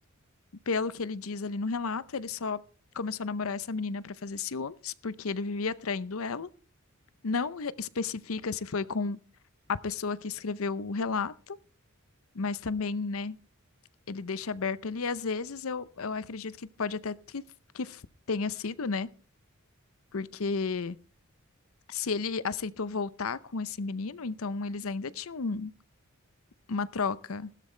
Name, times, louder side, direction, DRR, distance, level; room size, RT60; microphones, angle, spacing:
voice 1, 0.7-2.6 2.9-6.5 7.2-9.2 9.7-11.6 12.3-13.3 14.1-17.4 17.7-18.0 18.3-19.1 20.1-21.0 21.9-25.7 26.7-27.5, left 4 dB, 70° left, 0.7 m, -32 dB
15.5 x 12.5 x 3.3 m
head